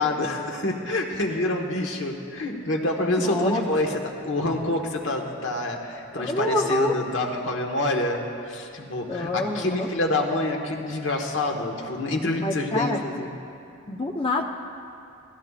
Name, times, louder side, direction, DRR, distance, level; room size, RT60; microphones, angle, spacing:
voice 1, 0.0-3.9 4.2-13.3, left 2 dB, 60° left, 2 dB, 1.4 m, -27 dB
voice 2, 3.0-3.6 3.9-4.0 6.1-7.0 9.1-9.9 12.4-13.0 13.9-14.4, left 1 dB, 25° left, 2 dB, 0.6 m, -26 dB
27.5 x 17.0 x 2.5 m, 2.6 s
head